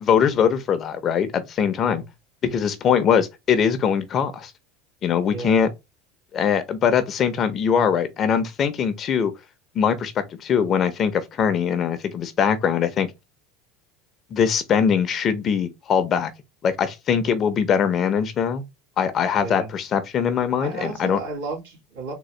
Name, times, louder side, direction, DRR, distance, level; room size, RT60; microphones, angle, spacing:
voice 1, 0.0-2.0 2.4-4.5 5.0-5.7 6.3-9.3 9.7-13.1 14.3-16.3 16.6-18.6 19.0-21.2, left 7 dB, 35° left, 0.7 m, -22 dB
voice 2, 1.8-2.1 5.3-5.6 19.4-19.7 20.5-22.1, right 3 dB, 90° right, 2.4 m, -33 dB
3.8 x 2.3 x 3.2 m
supercardioid pair, 120°, 0 cm